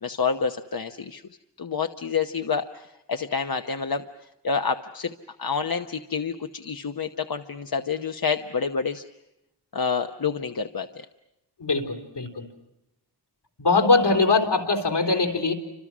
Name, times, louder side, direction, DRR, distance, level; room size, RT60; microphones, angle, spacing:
voice 1, 0.0-1.2 1.6-9.0 9.7-11.1, left 5 dB, 55° left, 6 dB, 1.0 m, -28 dB
voice 2, 11.6-12.4 13.6-15.5, left 3 dB, 75° left, 5 dB, 4.0 m, -22 dB
29.5 x 26.5 x 6.2 m, 0.90 s
wide cardioid pair, 100°, 42 cm